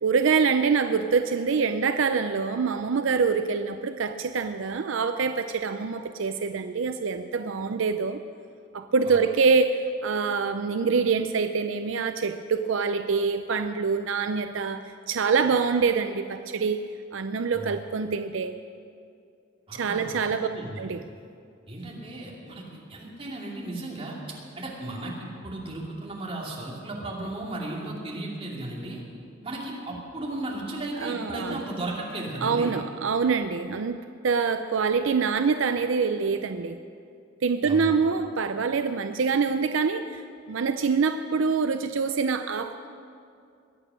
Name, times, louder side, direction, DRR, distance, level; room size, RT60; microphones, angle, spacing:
voice 1, 0.0-8.2 8.7-16.8 17.1-18.5 19.7-20.5 20.8-21.0 31.0-31.6 32.4-36.8 37.4-42.9, right 5 dB, 70° right, 9 dB, 0.5 m, -25 dB
voice 2, 19.7-20.8 21.7-29.0 29.4-32.7 37.7-38.0, right 2 dB, 30° right, -3 dB, 2.8 m, -35 dB
22.5 x 8.8 x 6.3 m, 2.5 s
head